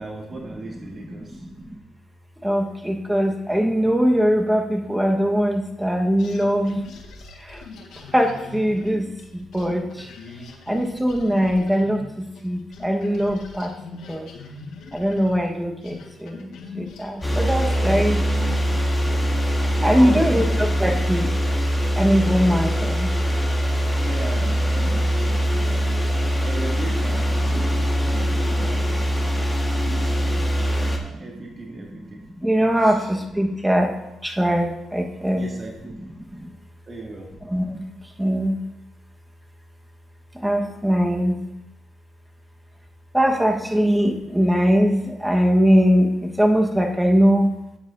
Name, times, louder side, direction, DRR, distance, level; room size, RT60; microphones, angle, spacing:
voice 1, 0.0-1.5 19.6-20.5 23.9-25.3 26.4-28.9 29.6-32.2 32.8-33.1 35.3-36.0 36.9-37.3, right 2 dB, 35° right, -2 dB, 2.2 m, -37 dB
voice 2, 0.8-1.8 2.4-6.8 7.4-7.6 8.0-10.1 10.7-13.7 14.1-14.3 14.9-18.2 19.8-21.3 21.9-23.1 24.9-25.8 27.7-27.8 28.2-28.3 28.9-29.0 32.2-33.9 34.2-35.4 36.3-36.5 37.4-38.6 40.3-41.4 43.1-47.5, equal, 5° right, 2 dB, 1.4 m, -21 dB
sound 1, 6.2-12.5 12.7-18.9, left 4 dB, 75° left, 1.6 m, -42 dB
sound 2, 17.2-31.0, equal, 10° left, 1.6 m, -22 dB
13.0 x 9.3 x 2.7 m, 0.88 s
cardioid pair, 90°, 0 cm